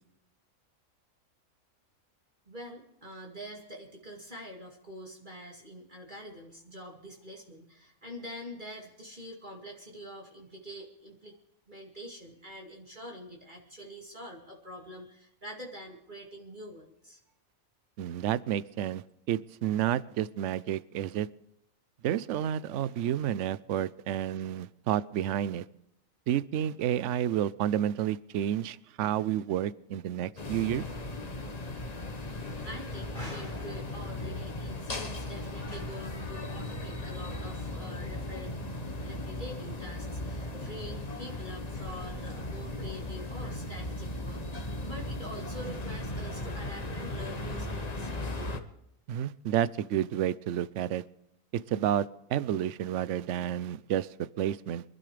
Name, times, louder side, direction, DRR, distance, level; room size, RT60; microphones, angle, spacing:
voice 1, 2.5-11.4 11.7-17.2 32.6-38.5 39.0-48.1, equal, 35° right, -1 dB, 2.6 m, -45 dB
voice 2, 18.0-21.3 22.0-25.6 26.3-30.8 49.1-51.0 51.5-54.8, right 11 dB, 65° right, 17 dB, 0.9 m, -30 dB
sound 1, 30.4-48.6, left 1 dB, 30° left, 1.3 m, -37 dB
25.0 x 12.0 x 3.3 m, 0.83 s
omnidirectional pair, 1.4 m